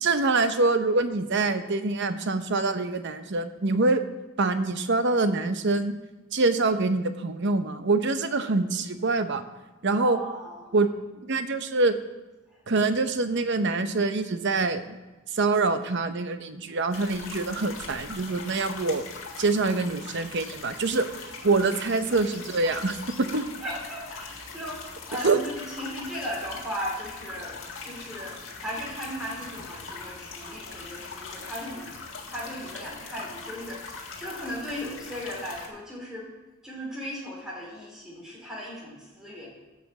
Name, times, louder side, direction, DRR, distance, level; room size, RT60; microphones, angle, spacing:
voice 1, 0.0-4.0 4.4-5.9 6.3-9.4 9.8-10.2 10.7-10.9 11.2-11.9 12.7-15.0 15.3-19.0 19.4-21.1 21.4-23.4 25.2-25.4, right 3 dB, 65° right, 10 dB, 0.8 m, -25 dB
voice 2, 10.0-10.7 23.6-27.6 27.8-31.9 32.3-36.3 36.6-39.5, equal, 5° right, -4 dB, 3.0 m, -37 dB
sound 1, 16.9-35.7, left 4 dB, 75° left, 1.8 m, -41 dB
11.5 x 5.9 x 7.3 m, 1.1 s
head